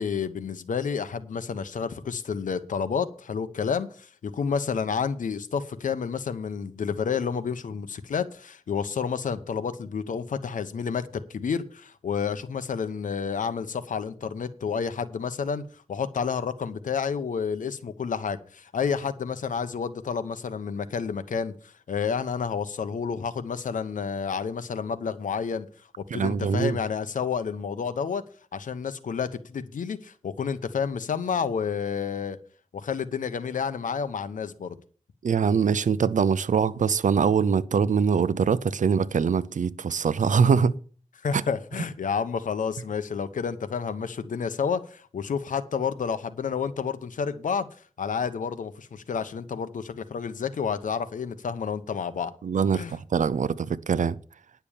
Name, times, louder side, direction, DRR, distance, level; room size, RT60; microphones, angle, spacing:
voice 1, 0.0-25.7 26.0-28.2 28.5-32.4 32.7-34.7 41.2-47.7 48.0-52.3 52.7-52.9, left 6 dB, 85° left, 1.0 m, -30 dB
voice 2, 26.1-26.8 35.2-40.8 41.3-41.4 52.4-52.8 53.1-54.2, right 6 dB, 75° right, 0.7 m, -23 dB
10.0 x 6.9 x 7.0 m
cardioid pair, 65°, 13 cm